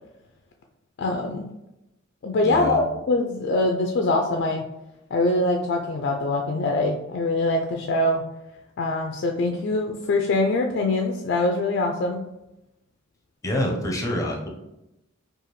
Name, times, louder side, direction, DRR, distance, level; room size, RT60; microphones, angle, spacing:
voice 1, 1.0-1.5 2.2-4.6 5.1-8.2 8.8-12.2, left 2 dB, 60° left, 2 dB, 0.4 m, -23 dB
voice 2, 2.4-2.8 13.4-14.5, left 1 dB, 15° left, 1 dB, 0.7 m, -26 dB
4.8 x 2.4 x 3.0 m, 0.91 s
head